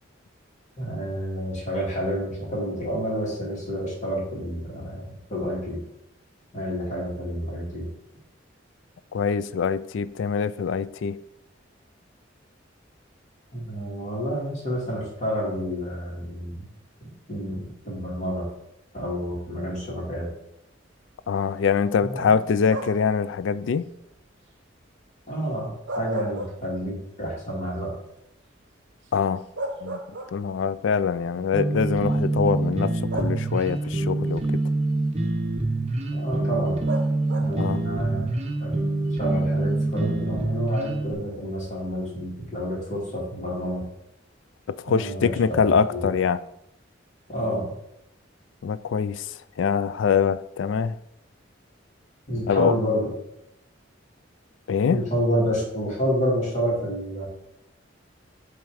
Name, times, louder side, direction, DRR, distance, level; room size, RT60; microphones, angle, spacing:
voice 1, 0.8-5.8 6.5-7.9 13.5-16.6 17.3-18.4 18.9-20.3 22.0-22.3 25.3-27.9 36.1-36.8 37.4-38.3 38.6-38.8 39.2-43.8 44.9-45.3 45.6-46.1 47.3-47.7 52.3-53.1 54.9-57.3, equal, 40° left, 2.4 m, -29 dB
voice 2, 9.1-11.2 21.3-23.9 29.1-29.4 29.8-30.0 30.3-34.4 37.6-37.8 44.9-46.4 48.6-49.3 49.6-50.9 52.5-52.8 54.7-55.0, left 6 dB, 75° left, 0.4 m, -24 dB
sound 1, 22.7-23.2 25.7-27.1 27.5-27.6 29.1-29.2 29.6-30.7 31.7-31.8 33.1-33.8 36.9-37.7, right 1 dB, 65° right, 0.8 m, -34 dB
sound 2, 31.5-41.1, right 2 dB, 35° right, 0.9 m, -25 dB
7.2 x 3.5 x 4.8 m
head